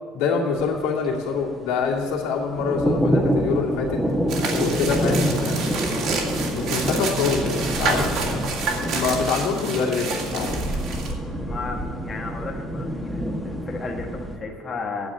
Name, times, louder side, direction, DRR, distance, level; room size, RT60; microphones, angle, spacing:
voice 1, 0.1-4.0 4.5-5.7 6.5-8.5 8.8-10.6, left 5 dB, 90° left, -1 dB, 2.3 m, -25 dB
sound 1, 0.5-14.4, equal, 5° right, 1.3 m, -27 dB
sound 2, 4.3-11.1, right 4 dB, 65° right, 2.4 m, -29 dB
voice 2, 11.5-15.1, left 3 dB, 25° left, 0 dB, 1.4 m, -34 dB
9.5 x 7.5 x 8.7 m, 2.1 s
cardioid pair, 140°, 0 cm